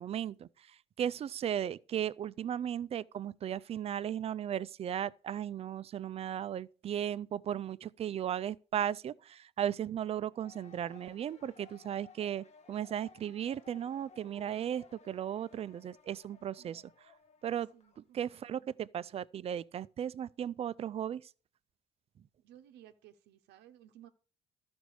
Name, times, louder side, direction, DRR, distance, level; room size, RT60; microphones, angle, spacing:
voice 1, 0.0-16.8 17.4-17.7 18.1-21.2, right 10 dB, 35° right, 0.4 m, -36 dB
sound 1, 10.3-18.0, left 5 dB, 40° left, 0.9 m, -59 dB
voice 2, 16.6-16.9 17.7-18.8 22.4-24.1, right 11 dB, 80° right, 0.7 m, -58 dB
12.5 x 5.2 x 4.7 m
cardioid pair, 110°, 17 cm